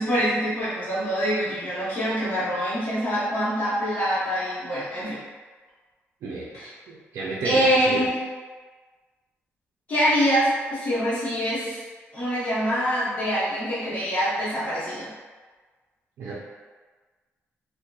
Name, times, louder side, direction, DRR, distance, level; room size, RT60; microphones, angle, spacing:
voice 1, 0.0-5.2 6.5-6.7 7.4-8.1 9.9-11.8 12.1-15.1, equal, 35° left, -13 dB, 0.9 m, -24 dB
voice 2, 6.2-8.1 16.2-16.4, right 3 dB, 80° right, -6 dB, 0.4 m, -33 dB
2.7 x 2.1 x 2.2 m, 1.4 s
wide cardioid pair, 140°, 5 cm